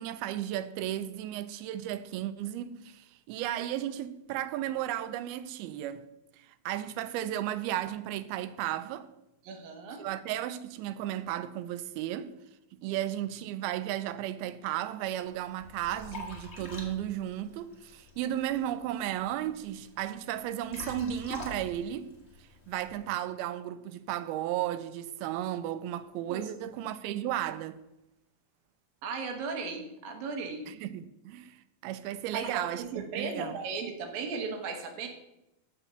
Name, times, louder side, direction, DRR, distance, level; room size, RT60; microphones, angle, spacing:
voice 1, 0.0-6.0 6.4-9.1 10.0-12.3 12.7-22.1 22.7-27.8 30.7-31.6 31.8-33.6, right 12 dB, 90° right, 2.5 m, -34 dB
voice 2, 9.4-10.0 12.9-13.0 26.3-26.4 29.0-30.6 32.3-35.1, right 4 dB, 75° right, 2.9 m, -36 dB
Liquid, 15.2-23.0, left 2 dB, 80° left, 0.5 m, -46 dB
7.1 x 6.0 x 6.7 m
omnidirectional pair, 4.3 m